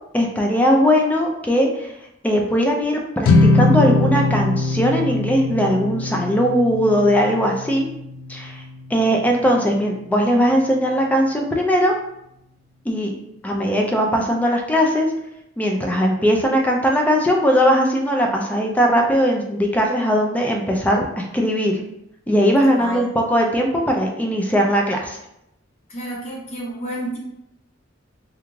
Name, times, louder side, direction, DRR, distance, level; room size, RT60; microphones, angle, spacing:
voice 1, 0.1-1.9 2.2-7.9 8.3-8.6 8.9-11.9 12.9-13.1 13.4-15.1 15.6-21.8 22.3-25.2, equal, 10° left, 1 dB, 0.3 m, -19 dB
sound 1, 3.2-9.7, left 2 dB, 85° left, 0.3 m, -21 dB
voice 2, 25.9-27.2, right 1 dB, 35° left, -4 dB, 0.8 m, -30 dB
2.4 x 2.2 x 3.1 m, 0.82 s
head